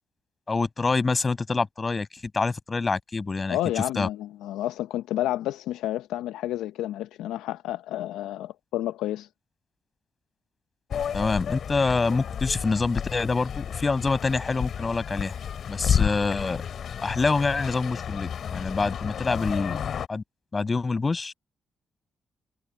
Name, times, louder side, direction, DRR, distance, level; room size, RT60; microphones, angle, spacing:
voice 1, 0.5-4.1 11.1-15.3 15.7-16.6 17.0-19.8 20.1-20.2 20.5-21.3, left 4 dB, 35° left, 6.6 m, -26 dB
voice 2, 3.5-9.3, left 13 dB, 85° left, 0.7 m, -30 dB
sound 1, 10.9-20.1, left 8 dB, 65° left, 2.8 m, -31 dB
supercardioid pair, 55°, 0 cm